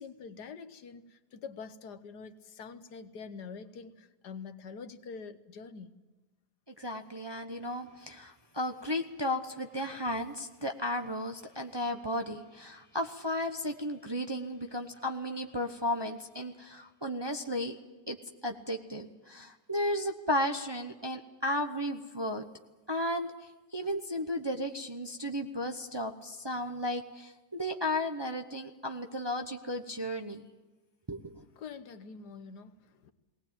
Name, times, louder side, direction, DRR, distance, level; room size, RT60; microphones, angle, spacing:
voice 1, 0.0-5.9 31.6-33.1, left 5 dB, 80° left, 1.7 m, -45 dB
voice 2, 6.7-17.7 18.1-18.2 18.4-22.4 22.9-30.5 31.1-31.4, left 1 dB, 20° right, 0.8 m, -34 dB
20.0 x 18.5 x 8.9 m
omnidirectional pair, 1.7 m